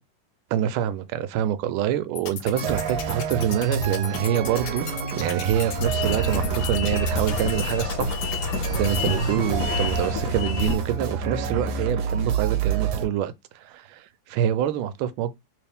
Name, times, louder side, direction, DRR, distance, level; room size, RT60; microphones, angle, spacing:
voice 1, 0.5-4.9 5.2-15.3, right 10 dB, 85° right, 1.4 m, -26 dB
sound 1, 2.2-9.1, left 7 dB, 65° left, 1.2 m, -37 dB
sound 2, 2.6-13.1, right 6 dB, 65° right, 1.1 m, -28 dB
sound 3, 5.7-10.8, left 5 dB, 90° left, 1.5 m, -29 dB
3.3 x 3.1 x 3.4 m
omnidirectional pair, 2.2 m